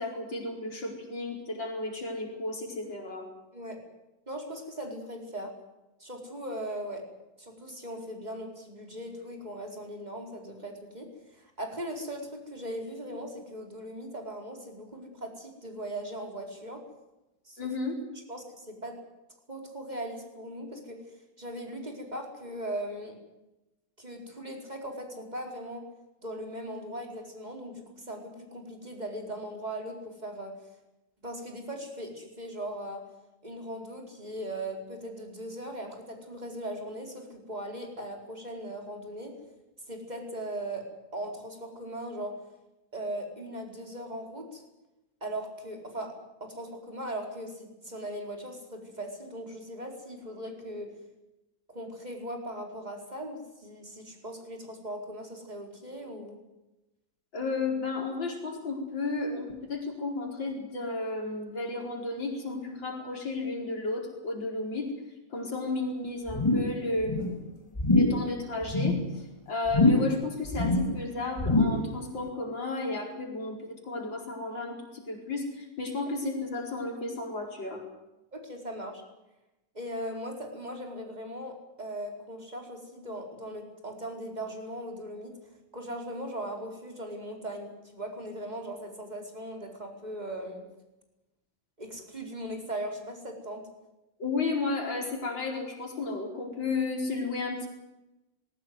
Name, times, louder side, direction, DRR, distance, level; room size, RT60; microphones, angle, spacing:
voice 1, 0.0-3.3 17.6-18.0 57.3-64.9 65.3-67.4 67.9-77.8 94.2-97.7, left 3 dB, 90° left, 1 dB, 5.5 m, -33 dB
voice 2, 4.3-5.5 6.0-7.1 7.4-16.8 17.4-17.7 18.3-19.0 19.5-21.0 21.4-23.2 24.0-25.8 26.2-30.6 31.2-33.0 33.4-39.3 39.9-40.9 41.1-42.4 42.9-44.6 45.2-46.1 46.4-50.9 51.7-56.4 78.3-79.0 79.7-85.3 85.7-90.7 91.8-93.6, right 1 dB, 20° right, 2 dB, 4.8 m, -39 dB
sound 1, 66.3-66.8 67.0-67.4 67.8-68.3 68.6-69.1 69.7-70.2 70.5-71.0 71.4-71.9 72.3-72.4, left 2 dB, 15° left, 2.1 m, -24 dB
20.5 x 17.5 x 9.6 m, 0.98 s
omnidirectional pair, 2.0 m